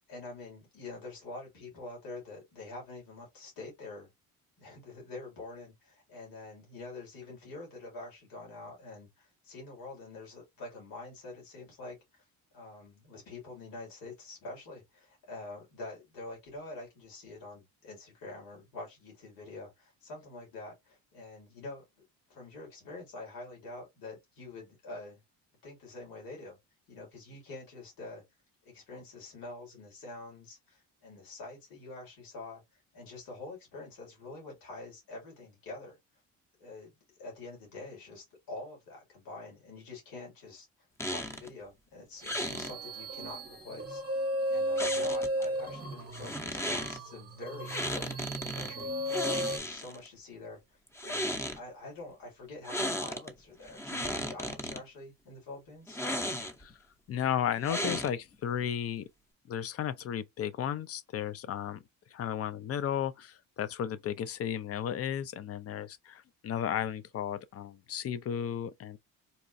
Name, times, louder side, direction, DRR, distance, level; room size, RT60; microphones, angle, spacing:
voice 1, 0.0-4.1 4.6-12.2 12.5-21.8 22.3-25.2 25.6-26.6 26.9-28.2 28.6-36.0 36.6-36.9 37.2-48.9 49.4-56.0, left 2 dB, 75° left, 2.5 m, -46 dB
sound 1, 41.0-41.5 42.2-42.7 44.8-45.5 46.1-47.0 47.7-48.7 49.1-50.1 50.9-51.6 52.6-53.3 53.7-54.8 55.9-56.7 57.6-58.3, left 1 dB, 5° left, 0.7 m, -35 dB
sound 2, 42.2-49.6, equal, 25° right, 0.9 m, -35 dB
voice 2, 57.1-59.1 59.5-61.8 62.1-69.0, left 9 dB, 40° left, 0.5 m, -34 dB
4.1 x 2.3 x 2.6 m
cardioid pair, 90°, 36 cm